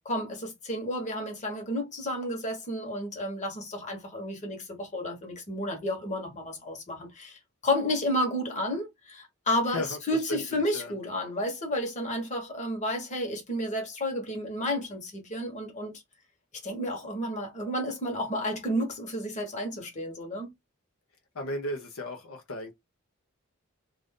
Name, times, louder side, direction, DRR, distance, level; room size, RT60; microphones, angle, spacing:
voice 1, 0.0-16.0 16.6-20.5, left 1 dB, 35° left, 1.2 m, -31 dB
voice 2, 9.7-11.0 21.3-22.7, left 1 dB, 75° left, 0.8 m, -36 dB
2.6 x 2.5 x 3.5 m
head